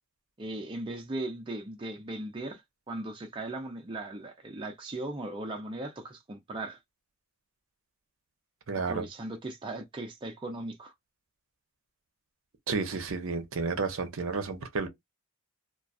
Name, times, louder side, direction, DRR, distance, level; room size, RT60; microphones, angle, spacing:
voice 1, 0.4-2.6 2.9-6.8 8.9-10.9, right 2 dB, 25° right, 0.4 m, -38 dB
voice 2, 8.7-9.0 12.7-14.9, right 4 dB, 65° right, 0.6 m, -31 dB
2.3 x 2.2 x 2.6 m
head